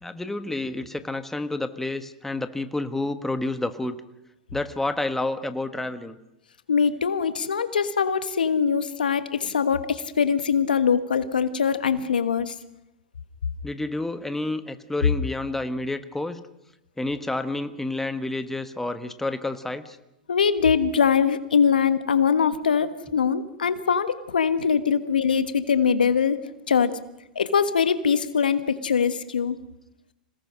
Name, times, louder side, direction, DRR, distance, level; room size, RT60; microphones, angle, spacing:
voice 1, 0.0-4.0 4.5-6.2 13.6-16.4 17.0-20.0, left 2 dB, 5° left, 10 dB, 1.5 m, -29 dB
voice 2, 6.7-12.5 20.3-26.4 26.7-26.9 27.3-29.6, left 6 dB, 85° left, 12 dB, 1.4 m, -22 dB
27.0 x 18.0 x 6.4 m, 0.90 s
hypercardioid pair, 105°, 5 cm